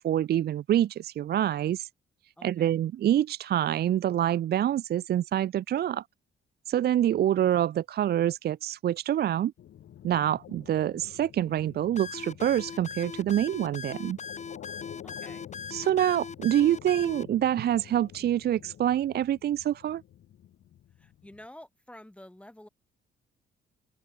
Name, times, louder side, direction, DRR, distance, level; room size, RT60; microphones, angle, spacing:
voice 1, 0.0-1.9 2.4-6.0 6.7-9.5 10.0-14.2 15.7-20.0, right 11 dB, 55° right, 0.5 m, -26 dB
voice 2, 2.4-2.7 15.0-15.5 21.0-22.7, left 1 dB, 5° left, 3.3 m, -49 dB
sound 1, 9.6-21.5, left 11 dB, 70° left, 4.7 m, -49 dB
sound 2, 12.0-17.2, left 5 dB, 35° left, 2.5 m, -40 dB
cardioid pair, 90°, 20 cm